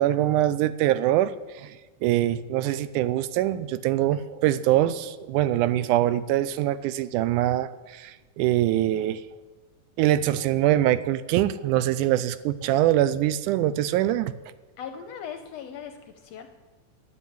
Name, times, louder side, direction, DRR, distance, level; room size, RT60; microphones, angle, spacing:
voice 1, 0.0-1.3 1.6-1.7 2.0-9.2 10.0-14.3, right 13 dB, 80° right, 15 dB, 1.9 m, -23 dB
voice 2, 14.8-16.5, left 8 dB, 75° left, 7 dB, 1.5 m, -39 dB
11.0 x 8.6 x 9.1 m, 1.2 s
omnidirectional pair, 3.8 m